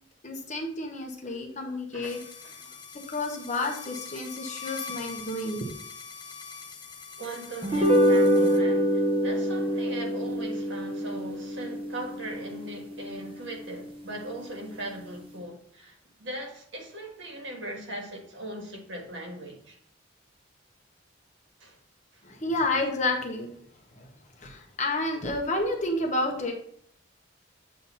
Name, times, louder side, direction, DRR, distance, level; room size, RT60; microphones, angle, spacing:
voice 1, 0.2-2.2 2.9-5.7 22.2-23.5 23.9-24.1 24.4-26.5, left 2 dB, 35° left, 0.9 m, -30 dB
voice 2, 1.9-2.7 7.2-19.8 21.6-21.8 22.1-22.2, right 1 dB, 65° right, 1.5 m, -39 dB
sound 1, 2.0-8.6, left 5 dB, 20° left, 0.6 m, -43 dB
sound 2, 7.6-14.1, equal, 25° right, 0.7 m, -26 dB
7.7 x 2.8 x 5.6 m
head